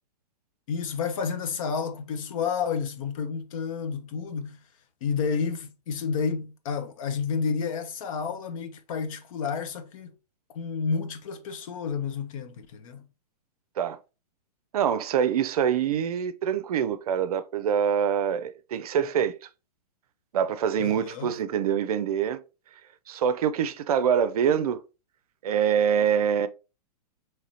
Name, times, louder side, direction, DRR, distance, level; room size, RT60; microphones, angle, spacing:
voice 1, 0.7-4.6 5.0-10.1 10.5-13.1 20.8-21.3, left 6 dB, 55° left, 0.7 m, -30 dB
voice 2, 14.7-19.3 20.3-22.4 23.1-24.8 25.4-26.5, right 8 dB, 65° right, 0.5 m, -25 dB
4.8 x 3.2 x 2.9 m
hypercardioid pair, 125°, 21 cm